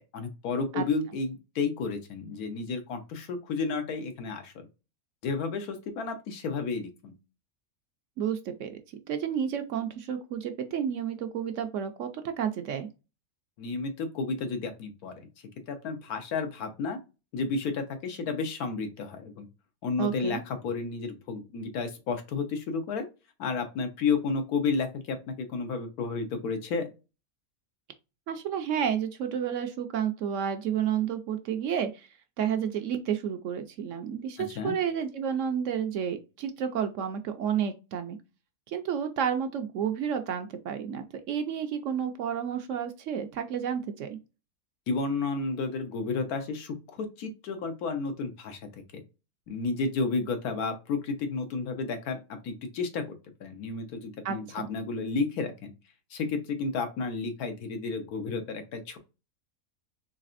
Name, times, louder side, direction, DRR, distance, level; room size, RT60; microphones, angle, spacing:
voice 1, 0.1-4.7 5.2-7.1 13.6-15.3 15.7-17.0 17.3-19.5 19.8-23.1 23.4-26.9 34.4-34.8 44.9-48.6 49.5-53.1 53.4-55.7 56.1-59.0, left 4 dB, 85° left, 7 dB, 1.3 m, -32 dB
voice 2, 8.2-8.8 9.1-12.9 20.0-20.4 28.3-32.1 32.4-38.2 38.7-44.2 54.2-54.7, right 8 dB, 65° right, 7 dB, 0.8 m, -31 dB
4.0 x 3.2 x 2.5 m, 0.29 s
omnidirectional pair, 1.5 m